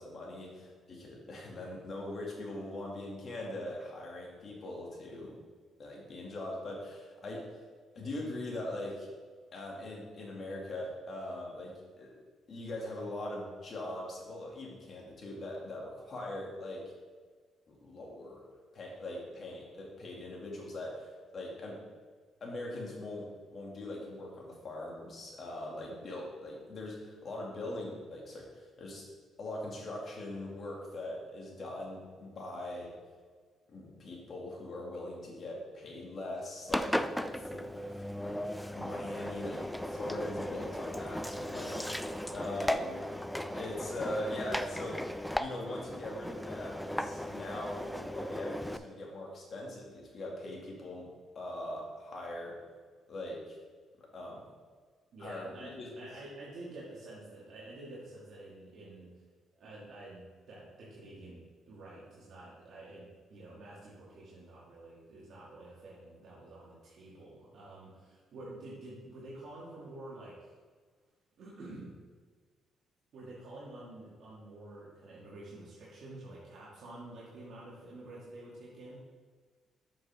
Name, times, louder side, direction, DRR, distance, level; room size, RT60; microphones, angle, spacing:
voice 1, 0.0-5.4 5.8-7.5 7.9-9.1 9.5-12.1 12.5-16.8 17.7-18.4 18.7-21.8 22.4-29.1 29.4-32.9 33.7-38.4 38.7-41.8 42.3-43.0 43.5-51.1 51.3-52.6 53.1-53.4 54.0-54.5 55.2-55.9, left 1 dB, 45° left, -2 dB, 2.3 m, -41 dB
Engine, 36.7-48.8, equal, 5° left, 0.4 m, -36 dB
voice 2, 41.6-42.4 55.1-59.1 59.6-70.5 71.4-71.9 73.1-79.0, right 2 dB, 65° right, -7 dB, 2.0 m, -49 dB
7.6 x 6.0 x 3.6 m, 1.5 s
cardioid pair, 90°, 0 cm